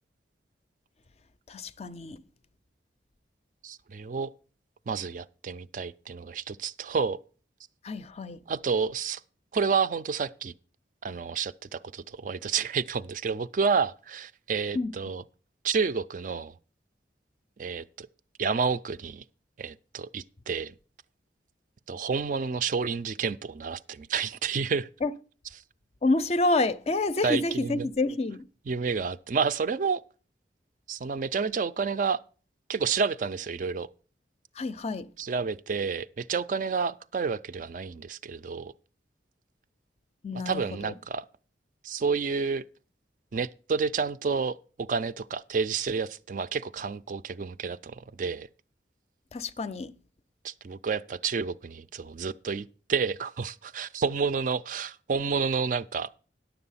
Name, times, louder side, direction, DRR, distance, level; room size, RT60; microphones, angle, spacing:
voice 1, 1.5-2.2 7.8-8.4 14.7-14.9 25.0-25.1 26.0-28.5 34.6-35.1 40.2-40.9 49.3-50.0, left 2 dB, 35° left, 0.4 m, -28 dB
voice 2, 3.6-4.3 4.9-7.2 8.5-9.2 9.5-10.5 11.0-15.2 15.6-16.5 17.6-18.1 18.4-19.2 19.6-20.7 21.9-24.9 27.2-27.8 28.7-30.0 30.9-32.2 32.7-33.9 35.2-38.7 40.5-41.2 41.8-42.6 43.3-48.5 50.4-56.1, right 5 dB, 45° right, 0.4 m, -30 dB
10.5 x 6.9 x 5.6 m
head